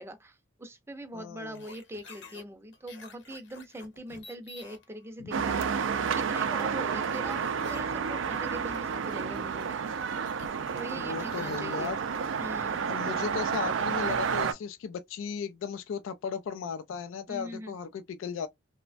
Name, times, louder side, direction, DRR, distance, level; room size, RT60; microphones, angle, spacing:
voice 1, 0.0-9.8 10.7-12.0 12.4-12.9 17.3-17.8, right 1 dB, 15° right, 0.5 m, -42 dB
voice 2, 1.1-1.6 5.2-5.3 10.9-12.0 12.8-18.5, left 6 dB, 85° left, 0.3 m, -36 dB
sound 1, 1.5-2.4 2.7-4.8 5.3-6.6 7.1-11.6, left 4 dB, 65° left, 0.8 m, -51 dB
sound 2, 5.3-14.5, right 6 dB, 75° right, 0.4 m, -30 dB
3.0 x 2.1 x 2.4 m
head